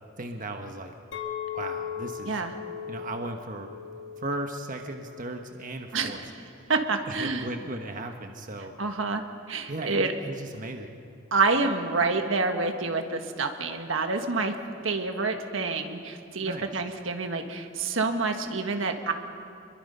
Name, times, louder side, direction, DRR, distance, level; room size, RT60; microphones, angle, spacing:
voice 1, 0.2-0.9 1.5-2.4 2.9-3.7 4.2-6.2 7.1-8.7 9.7-10.9 16.4-16.7, right 2 dB, 45° right, 4 dB, 1.2 m, -36 dB
Chink clink, 1.1-6.3, left 8 dB, 70° left, 1.9 m, -39 dB
voice 2, 5.9-6.3 6.7-7.5 8.8-9.2 9.5-10.1 11.3-14.5 14.8-19.1, right 3 dB, 80° right, 5 dB, 1.6 m, -27 dB
27.5 x 22.0 x 5.6 m, 2.5 s
head